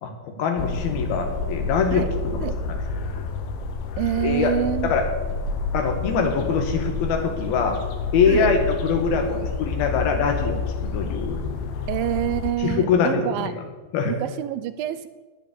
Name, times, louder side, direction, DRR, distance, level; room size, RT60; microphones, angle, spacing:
voice 1, 0.0-2.4 3.2-3.3 4.2-4.5 4.8-5.1 5.7-7.8 8.1-11.4 12.6-13.5 13.9-14.1, left 5 dB, 90° left, 4 dB, 3.5 m, -23 dB
sound 1, 0.6-12.5, left 4 dB, 75° left, 2.4 m, -29 dB
voice 2, 4.0-5.0 8.3-8.5 11.9-13.5 14.1-15.1, right 12 dB, 85° right, 12 dB, 2.4 m, -27 dB
9.5 x 8.3 x 8.4 m, 1.2 s
omnidirectional pair, 4.2 m